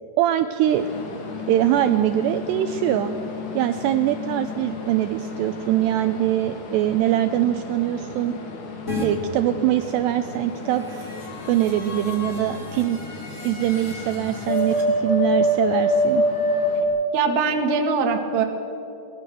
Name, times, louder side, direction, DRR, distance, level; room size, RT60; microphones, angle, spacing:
voice 1, 0.2-0.9 1.5-3.1 3.5-8.4 9.0-11.1 11.5-13.0 13.4-14.8 15.0-16.2, right 13 dB, 85° right, 9 dB, 2.5 m, -22 dB
sound 1, 0.7-16.8, left 1 dB, 80° left, 5.1 m, -28 dB
sound 2, 8.9-9.1 10.5-14.8, left 3 dB, 20° left, 2.7 m, -35 dB
voice 2, 17.1-18.4, right 5 dB, 50° right, 3 dB, 2.4 m, -22 dB
23.0 x 19.0 x 6.9 m, 2.9 s
omnidirectional pair, 5.5 m